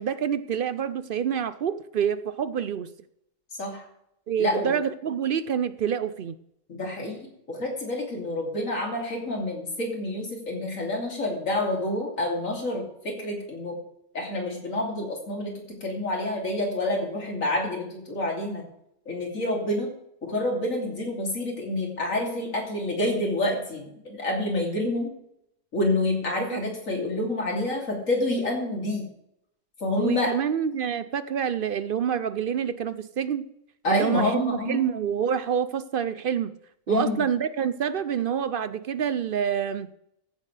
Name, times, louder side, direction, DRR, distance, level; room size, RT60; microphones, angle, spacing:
voice 1, 0.0-2.9 4.3-6.3 26.5-26.6 30.0-33.5 33.9-36.6 36.9-39.9, right 8 dB, 60° right, 0.6 m, -27 dB
voice 2, 4.4-4.8 6.7-13.8 14.1-18.7 19.1-19.9 20.2-25.1 25.7-29.1 29.8-30.3 33.8-34.9 36.9-37.2, left 1 dB, 85° left, 3.3 m, -28 dB
14.5 x 10.5 x 3.3 m
omnidirectional pair, 1.3 m